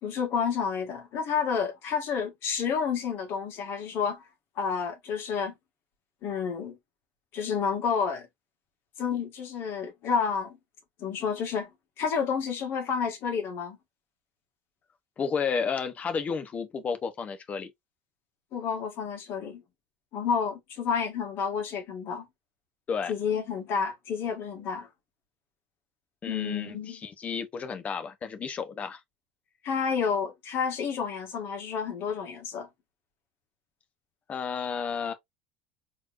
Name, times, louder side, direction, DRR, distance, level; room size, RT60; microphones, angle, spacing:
voice 1, 0.0-4.2 4.6-5.5 6.2-6.8 7.3-8.3 9.0-10.6 11.0-11.7 12.0-13.8 18.5-19.6 20.1-22.3 23.1-24.9 26.3-27.0 29.6-32.7, left 6 dB, 50° left, 1.6 m, -30 dB
voice 2, 15.2-17.7 22.9-23.1 26.2-29.0 34.3-35.1, left 6 dB, 30° left, 0.8 m, -32 dB
4.2 x 3.1 x 2.4 m
supercardioid pair, 115°, 5 cm